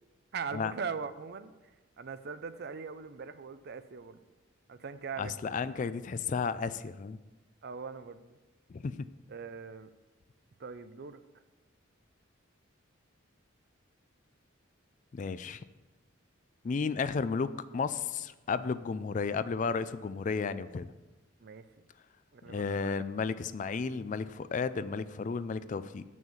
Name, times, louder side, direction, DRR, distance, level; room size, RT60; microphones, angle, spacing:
voice 1, 0.3-1.5 2.0-4.2 4.7-5.3 7.6-8.4 9.3-9.9 10.6-11.2 21.4-21.6 22.3-23.3, right 5 dB, 50° right, 12 dB, 0.5 m, -41 dB
voice 2, 5.2-7.2 8.7-9.1 15.1-15.6 16.6-20.9 22.5-26.0, left 5 dB, 40° left, 14 dB, 0.3 m, -33 dB
7.3 x 6.2 x 7.1 m, 1.1 s
head